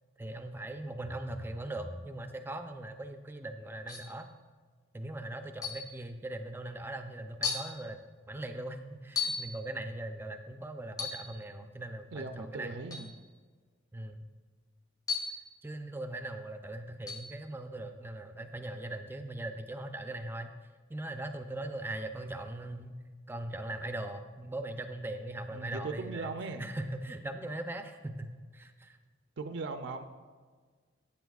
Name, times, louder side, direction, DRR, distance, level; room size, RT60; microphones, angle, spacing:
voice 1, 0.2-4.3 4.9-8.0 8.3-12.7 13.9-14.2 15.6-20.5 20.9-29.0, right 1 dB, 10° right, 6 dB, 0.5 m, -40 dB
sound 1, 3.9-4.2 5.6-5.9 6.7-6.8 7.4-7.7 9.2-9.5 10.9-11.3 12.9-13.1 15.1-15.5 17.1-17.3, left 5 dB, 20° left, 0.8 m, -35 dB
voice 2, 12.1-13.1 25.5-26.7 29.4-30.1, right 3 dB, 60° right, 7 dB, 0.5 m, -39 dB
14.0 x 8.8 x 2.4 m, 1.5 s
head